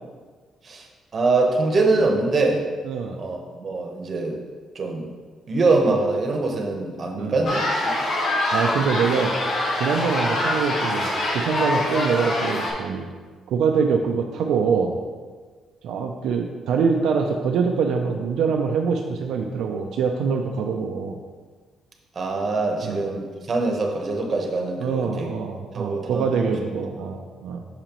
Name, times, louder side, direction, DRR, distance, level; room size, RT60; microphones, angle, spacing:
voice 1, 1.1-2.6 3.2-4.4 4.7-5.1 5.5-8.0 22.1-25.3 25.7-26.6, right 3 dB, 45° right, 2 dB, 1.0 m, -23 dB
voice 2, 2.9-3.2 7.2-7.4 8.5-9.3 9.7-11.1 11.3-13.1 13.5-15.0 15.8-21.2 22.8-23.0 24.8-27.6, right 5 dB, 80° right, 2 dB, 0.4 m, -24 dB
sound 1, 7.4-12.7, left 1 dB, 55° left, 1.3 m, -24 dB
6.4 x 5.0 x 3.0 m, 1.4 s
cardioid pair, 90°, 0 cm